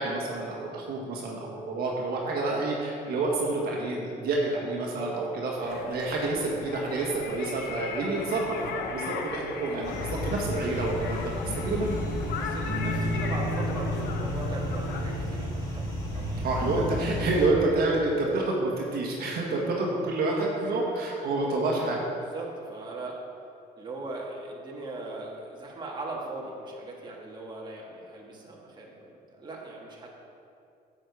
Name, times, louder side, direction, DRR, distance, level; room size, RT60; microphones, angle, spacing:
voice 1, 0.0-12.0 16.4-22.0, right 2 dB, 65° right, -2 dB, 1.8 m, -28 dB
voice 2, 4.8-5.1 12.4-16.5 19.5-19.7 20.7-20.8 22.2-23.2 23.8-30.1, right 2 dB, 25° right, -3 dB, 2.0 m, -39 dB
sound 1, 5.6-15.1, left 5 dB, 80° left, 0.9 m, -38 dB
sound 2, 9.8-17.5, left 1 dB, 25° left, 2.6 m, -31 dB
9.1 x 7.8 x 4.9 m, 2.6 s
cardioid pair, 110°, 17 cm